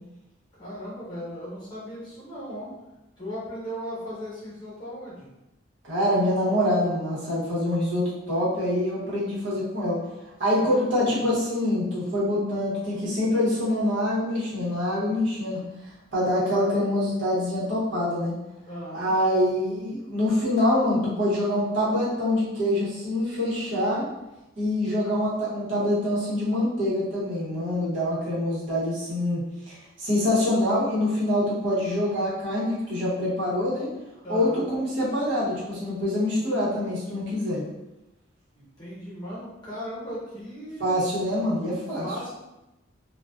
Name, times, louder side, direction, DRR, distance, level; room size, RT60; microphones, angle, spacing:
voice 1, 0.5-2.7 3.2-5.3 10.6-11.2 18.7-19.1 34.2-34.7 38.5-40.9 42.0-42.3, equal, 25° left, -8 dB, 0.9 m, -37 dB
voice 2, 5.8-10.0 10.4-15.6 16.1-18.4 18.9-24.0 24.6-29.4 29.7-33.9 34.3-37.6 40.8-42.1, left 1 dB, 70° right, -8 dB, 1.0 m, -25 dB
2.4 x 2.3 x 2.2 m, 0.96 s
head